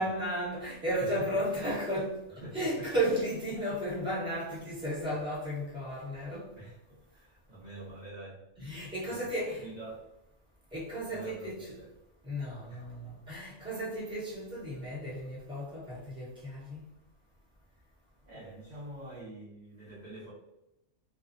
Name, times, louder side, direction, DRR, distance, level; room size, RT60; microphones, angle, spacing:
voice 1, 0.0-2.2 2.5-6.5 8.6-9.7 10.7-11.7 12.3-16.8, equal, 5° right, 0.7 m, -34 dB
voice 2, 1.0-1.4 2.4-2.9 4.5-4.6 5.0-5.2 6.5-8.8 9.0-9.2 9.6-10.0 11.1-11.9 12.7-12.8 18.3-20.3, right 1 dB, 50° right, 0.5 m, -46 dB
2.5 x 2.1 x 2.5 m
omnidirectional pair, 1.4 m